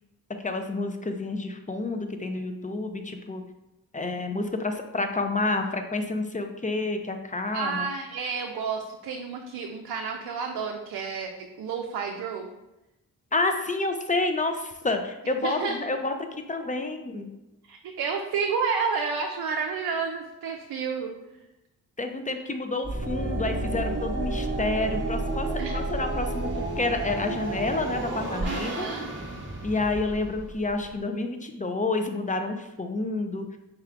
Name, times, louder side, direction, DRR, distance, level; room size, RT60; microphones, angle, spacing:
voice 1, 0.4-3.4 3.9-7.9 13.3-17.3 22.0-25.5 25.7-26.5 26.8-28.9 29.6-33.5, left 2 dB, 20° left, 6 dB, 0.5 m, -29 dB
voice 2, 7.5-12.5 15.4-15.8 17.7-21.1 25.6-25.8 28.4-29.1, right 5 dB, 75° right, 2 dB, 0.5 m, -30 dB
sound 1, 22.8-31.0, right 2 dB, 30° right, 1.0 m, -31 dB
4.8 x 3.2 x 2.4 m, 0.96 s
cardioid pair, 50°, 38 cm